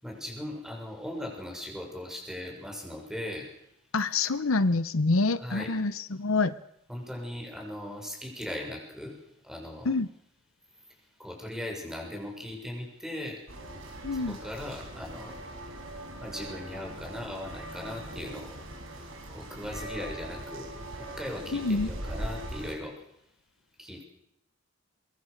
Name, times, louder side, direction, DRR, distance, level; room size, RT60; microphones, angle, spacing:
voice 1, 0.0-3.5 5.4-5.7 6.9-9.1 9.4-9.9 11.2-13.4 14.1-15.4 16.2-18.5 19.3-20.7 21.2-22.9 23.8-24.0, left 1 dB, 5° right, 1 dB, 6.8 m, -38 dB
voice 2, 3.9-6.6 9.8-10.1 14.0-14.4 21.5-21.9, left 3 dB, 85° left, 15 dB, 0.9 m, -26 dB
sound 1, 13.5-22.8, right 1 dB, 70° right, 5.3 m, -40 dB
24.0 x 23.0 x 6.6 m, 0.77 s
head